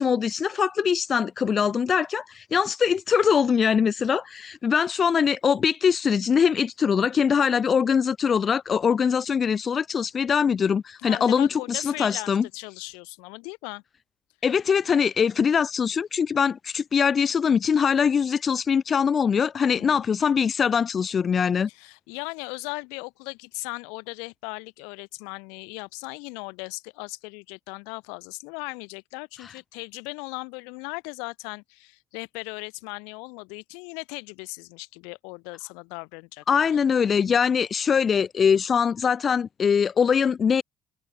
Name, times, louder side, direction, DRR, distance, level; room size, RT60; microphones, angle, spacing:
voice 1, 0.0-12.5 14.4-21.7 29.4-29.5 36.5-40.6, left 7 dB, 35° left, 0.6 m, -22 dB
voice 2, 11.0-13.8 19.7-20.0 21.7-36.4, left 35 dB, 85° left, 6.0 m, -38 dB
cardioid pair, 110°, 0 cm